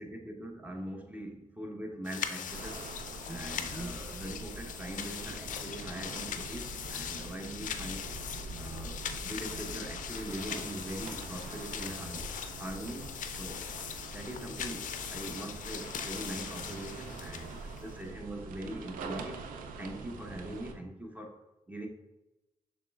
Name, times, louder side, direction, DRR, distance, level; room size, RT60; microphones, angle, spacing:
voice 1, 0.0-2.9 3.2-8.1 8.6-9.0 9.2-12.3 12.6-13.7 14.1-19.4 19.8-21.4 21.7-21.9, right 1 dB, 10° right, 2 dB, 1.0 m, -42 dB
sound 1, 2.0-18.0, left 8 dB, 70° left, 0.4 m, -41 dB
sound 2, 2.5-20.7, right 3 dB, 85° right, 0.4 m, -44 dB
6.4 x 3.2 x 2.4 m, 1.0 s
supercardioid pair, 40°, 14 cm